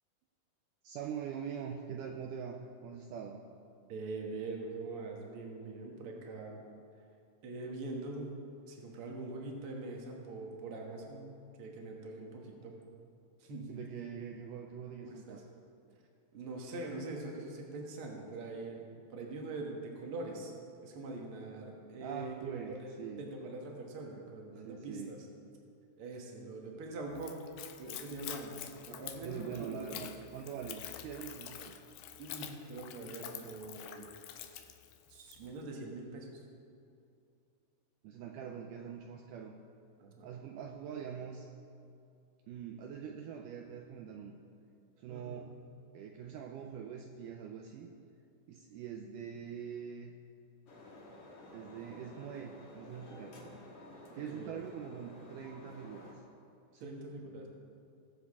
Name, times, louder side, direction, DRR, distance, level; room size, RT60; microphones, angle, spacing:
voice 1, 0.8-3.4 13.7-15.4 22.0-23.3 24.6-25.2 29.2-31.8 38.0-39.6 40.2-41.5 42.5-44.4 45.0-45.5 45.9-47.9 48.5-50.1 51.5-53.6 54.1-56.2 56.7-57.0, right 7 dB, 90° right, 3 dB, 1.8 m, -44 dB
voice 2, 3.9-6.6 7.4-8.4 8.7-11.3 11.6-12.8 13.4-13.8 15.0-15.4 16.3-20.5 20.8-22.3 22.7-25.2 26.0-27.5 27.8-30.0 32.2-34.1 35.1-36.4 40.0-40.3 45.1-45.4 54.1-54.6 56.8-57.5, right 2 dB, 55° right, 0 dB, 1.5 m, -43 dB
Splash splatter / Trickle dribble, 27.1-35.5, left 11 dB, 80° left, 2.3 m, -47 dB
sound 1, 50.7-56.1, left 1 dB, 50° left, 2.1 m, -52 dB
19.5 x 7.3 x 3.6 m, 2.5 s
omnidirectional pair, 4.3 m